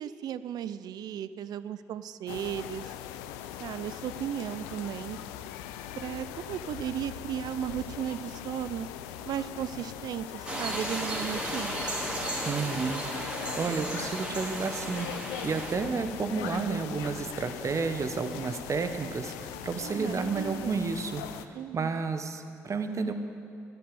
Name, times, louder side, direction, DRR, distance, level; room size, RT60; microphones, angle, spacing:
voice 1, 0.0-2.9 3.6-5.2 6.0-8.9 9.3-12.0 19.8-20.8 21.5-22.0, right 10 dB, 60° right, 14 dB, 0.5 m, -35 dB
sound 1, 2.3-21.5, left 11 dB, 75° left, 0.5 m, -41 dB
sound 2, 10.5-15.8, right 1 dB, 15° right, 3.3 m, -34 dB
voice 2, 12.4-13.0 13.6-15.1 15.4-21.2 21.7-23.1, right 4 dB, 40° right, 8 dB, 1.2 m, -31 dB
11.0 x 10.5 x 7.8 m, 2.3 s
hypercardioid pair, 45°, 8 cm